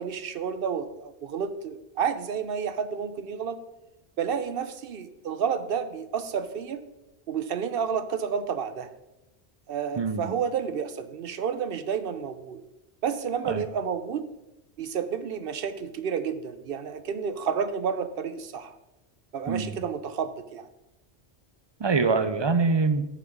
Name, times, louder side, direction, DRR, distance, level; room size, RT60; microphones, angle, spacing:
voice 1, 0.0-3.6 4.2-6.8 7.3-8.9 9.7-12.6 13.0-14.2 14.8-18.8 19.3-20.7, right 7 dB, 65° right, 12 dB, 0.8 m, -30 dB
voice 2, 10.0-10.3 13.4-13.6 19.5-19.8 21.8-23.1, right 4 dB, 40° right, 10 dB, 0.3 m, -24 dB
7.1 x 6.8 x 5.1 m, 0.97 s
omnidirectional pair, 1.1 m